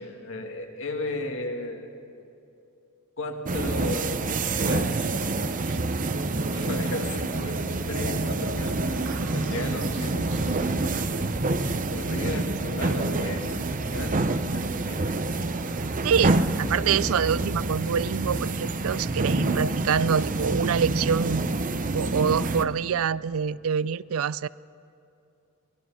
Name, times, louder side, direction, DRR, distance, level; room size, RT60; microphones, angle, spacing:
voice 1, 0.0-1.9 3.2-5.9 6.4-10.5 11.6-14.2 14.5-15.2, left 2 dB, 65° left, 3 dB, 2.3 m, -35 dB
sound 1, 3.4-22.6, right 2 dB, 40° right, 0.8 m, -27 dB
sound 2, 6.1-14.8, right 2 dB, 60° right, 1.5 m, -42 dB
voice 2, 16.0-21.4 21.9-24.5, right 7 dB, 80° right, 19 dB, 0.4 m, -26 dB
25.5 x 20.0 x 5.8 m, 2.6 s
head